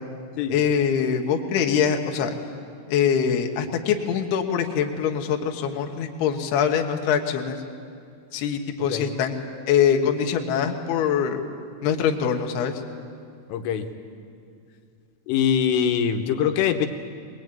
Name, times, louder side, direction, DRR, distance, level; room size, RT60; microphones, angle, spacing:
voice 1, 0.5-2.3 2.9-7.6 8.3-9.3 9.7-11.4 11.8-12.8, left 7 dB, 65° left, 3 dB, 2.9 m, -23 dB
voice 2, 13.5-13.9 15.3-16.9, left 8 dB, 85° left, 6 dB, 3.6 m, -23 dB
21.5 x 20.5 x 9.2 m, 2.4 s
omnidirectional pair, 5.7 m